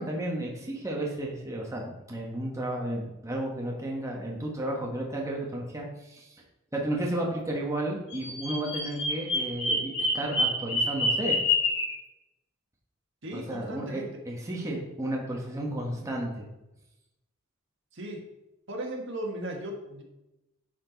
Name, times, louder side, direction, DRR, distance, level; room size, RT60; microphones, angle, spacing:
voice 1, 0.0-6.3 6.7-11.4 13.3-16.5, right 1 dB, 15° right, -2 dB, 1.2 m, -33 dB
Bird vocalization bird call bird song, 8.1-11.9, left 1 dB, 60° left, 2.9 m, -27 dB
voice 2, 13.2-14.1 17.9-18.2 18.7-20.0, right 1 dB, 65° right, 0 dB, 1.5 m, -36 dB
10.0 x 4.4 x 4.0 m, 0.93 s
head